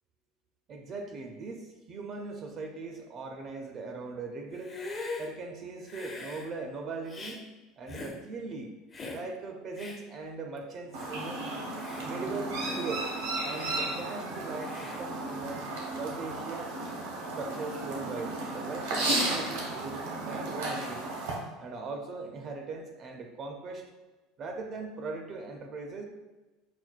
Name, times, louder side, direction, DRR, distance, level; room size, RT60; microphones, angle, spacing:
voice 1, 0.7-4.8 5.2-7.4 7.8-8.7 9.1-11.4 12.0-13.1 13.4-15.7 16.0-16.8 17.3-21.1 21.6-23.9 24.4-26.0, right 3 dB, 40° right, 4 dB, 0.4 m, -39 dB
Hiss, 4.5-5.3 5.9-6.5 7.1-7.4 7.9-8.2 8.9-9.2 9.8-10.0 10.6-10.7 10.9-11.2 11.7-12.1 12.5-12.9 13.4-13.8 14.6-15.0, left 3 dB, 25° left, 0.5 m, -41 dB
Chirp tweet, 10.9-21.3, right 2 dB, 90° right, 1.0 m, -34 dB
5.8 x 2.1 x 2.4 m, 1.2 s
supercardioid pair, 135°, 0 cm